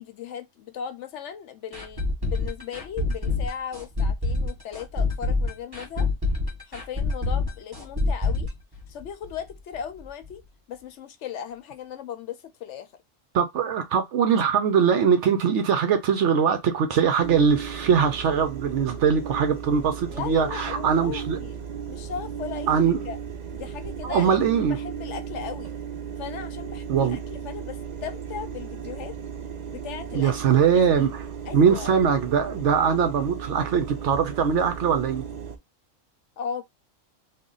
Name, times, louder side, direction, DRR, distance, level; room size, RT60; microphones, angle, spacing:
voice 1, 0.0-6.1 6.7-8.5 8.9-10.4 10.7-12.9 20.1-22.8 23.1-23.2 23.5-24.4 24.7-25.8 26.2-29.2 29.7-31.1 31.5-31.9 36.4-36.6, left 8 dB, 70° left, 0.9 m, -37 dB
sound 1, 1.7-9.5 9.7-9.8 10.2-10.3, left 3 dB, 20° right, 1.3 m, -26 dB
voice 2, 13.3-21.4 22.7-23.0 24.0-24.8 26.9-27.2 30.1-31.3 31.5-35.2, right 7 dB, 70° right, 0.9 m, -22 dB
sound 2, 17.2-35.6, right 7 dB, 50° right, 0.6 m, -35 dB
3.1 x 2.2 x 3.8 m
omnidirectional pair, 1.3 m